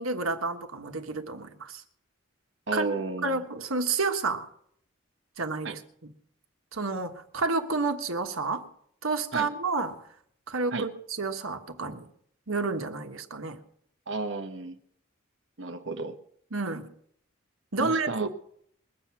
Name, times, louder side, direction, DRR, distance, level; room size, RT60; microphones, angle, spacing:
voice 1, 0.0-1.8 2.7-2.9 3.2-4.5 5.4-5.8 6.7-8.6 9.0-10.0 10.5-12.1 12.5-13.6 16.5-16.9 17.7-18.3, right 3 dB, 85° right, 1.4 m, -30 dB
voice 2, 2.7-3.4 5.6-5.8 9.3-9.5 10.7-10.9 14.1-14.8 15.6-16.2 17.8-18.3, right 3 dB, 60° right, 1.2 m, -33 dB
21.5 x 7.9 x 5.9 m
head